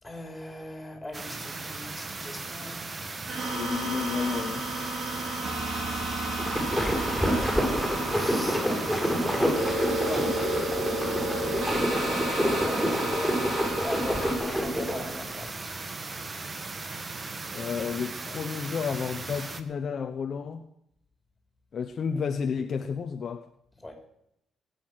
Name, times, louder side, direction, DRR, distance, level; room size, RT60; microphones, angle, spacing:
voice 1, 0.0-3.2 7.6-9.8 10.0-11.0 11.9-15.8 16.5-16.8 23.8-24.0, left 1 dB, 10° left, 4 dB, 4.1 m, -40 dB
sound 1, 1.1-19.6, right 3 dB, 30° right, 1.3 m, -38 dB
sound 2, 3.3-14.4, right 1 dB, 60° right, 4.6 m, -32 dB
voice 2, 3.5-4.7 17.5-20.6 21.7-23.5, left 6 dB, 50° left, 7 dB, 0.9 m, -31 dB
sound 3, 6.2-15.1, equal, 5° right, 7.1 m, -28 dB
20.0 x 8.4 x 6.3 m, 0.76 s
cardioid pair, 90°, 0 cm